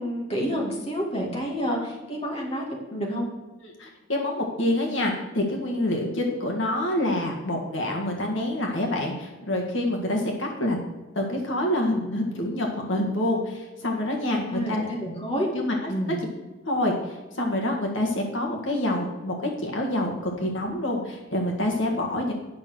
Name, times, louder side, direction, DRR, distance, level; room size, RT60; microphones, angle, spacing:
voice 1, 0.0-2.6 2.9-3.3 14.3-14.7 15.0-15.5 15.9-16.2, equal, 30° left, -1 dB, 2.2 m, -29 dB
voice 2, 3.6-10.8 11.2-14.9 15.5-16.2 16.7-22.3, left 1 dB, 75° left, 1 dB, 1.7 m, -27 dB
9.5 x 6.2 x 6.2 m, 1.1 s
head